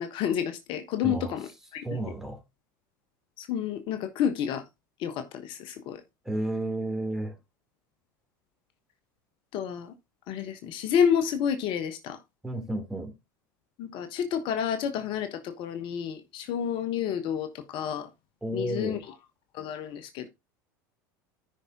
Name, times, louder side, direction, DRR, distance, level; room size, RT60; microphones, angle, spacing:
voice 1, 0.0-1.9 3.4-4.7 5.0-6.0 9.5-9.9 10.3-12.2 13.8-18.1 18.5-19.1 19.5-20.3, left 8 dB, 55° left, 1.2 m, -30 dB
voice 2, 1.0-1.4 1.8-2.4 6.2-7.4 12.4-13.1 18.4-19.0, right 1 dB, 5° right, 3.3 m, -32 dB
13.5 x 5.7 x 2.9 m
hypercardioid pair, 85°, 10 cm